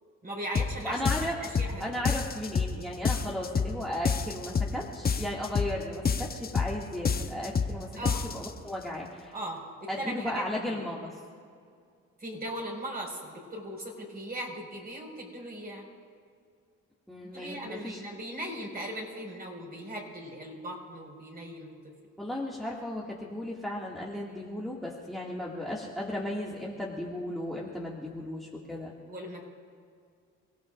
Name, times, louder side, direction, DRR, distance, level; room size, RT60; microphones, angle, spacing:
voice 1, 0.2-2.0 7.9-8.2 9.3-10.8 12.2-15.8 17.2-21.9 29.1-29.4, right 1 dB, 30° right, -1 dB, 5.2 m, -39 dB
sound 1, 0.5-0.7 1.0-1.7 2.0-2.7 3.0-3.7 4.0-4.7 5.0-5.7 6.0-6.7 7.0-7.7 8.0-8.5, left 5 dB, 30° left, 0.9 m, -27 dB
voice 2, 0.8-1.3 1.8-7.9 8.3-9.3 9.9-11.1 17.1-18.0 22.2-28.9, left 1 dB, ahead, -4 dB, 2.2 m, -35 dB
29.5 x 17.0 x 2.5 m, 2.2 s
cardioid pair, 90°, 30 cm